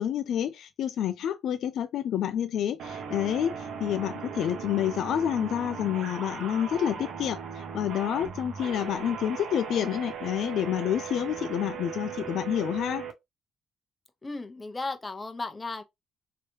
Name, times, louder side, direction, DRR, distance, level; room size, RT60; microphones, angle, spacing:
voice 1, 0.0-13.0, left 10 dB, 75° left, 0.3 m, -29 dB
sound 1, 2.8-13.1, right 6 dB, 75° right, 0.8 m, -38 dB
voice 2, 14.2-15.8, left 3 dB, 25° left, 0.7 m, -35 dB
3.2 x 2.8 x 2.8 m
cardioid pair, 90°, 0 cm